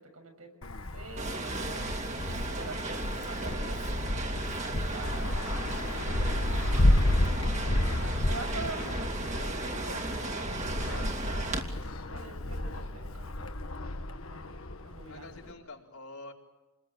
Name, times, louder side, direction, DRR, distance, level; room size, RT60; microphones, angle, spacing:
voice 1, 0.1-0.5 0.9-2.0 2.4-7.4 8.0-11.5 12.1-13.5 14.3-15.4, right 2 dB, 85° right, 4 dB, 6.8 m, -45 dB
Wind, 0.6-15.5, left 1 dB, 70° left, 1.5 m, -31 dB
sound 1, 1.2-11.6, right 2 dB, 35° right, 2.7 m, -35 dB
voice 2, 7.5-8.2 15.1-16.3, left 3 dB, 85° left, 0 dB, 4.4 m, -47 dB
sound 2, 8.1-8.2 9.1-9.6 10.1-10.2 10.8-10.9 11.5-11.6 11.8-12.3 12.7-12.8, right 1 dB, 65° right, 5.8 m, -55 dB
28.5 x 20.5 x 9.0 m, 1.0 s
head